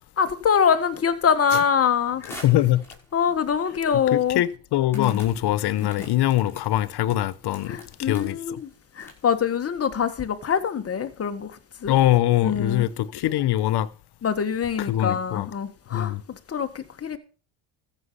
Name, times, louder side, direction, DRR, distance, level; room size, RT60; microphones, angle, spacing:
voice 1, 0.2-2.2 3.1-4.4 4.9-5.2 5.8-5.9 7.7-8.7 9.0-11.5 11.8-12.0 12.4-12.9 14.2-17.2, left 7 dB, 30° left, 1.7 m, -24 dB
sound 1, 2.2-3.2 3.9-4.0 4.9-9.4, left 1 dB, 5° left, 5.8 m, -44 dB
voice 2, 2.4-2.8 4.1-8.6 11.9-13.9 14.8-15.5 15.9-16.2, left 14 dB, 55° left, 1.1 m, -23 dB
14.5 x 6.7 x 5.7 m
supercardioid pair, 100°, 48 cm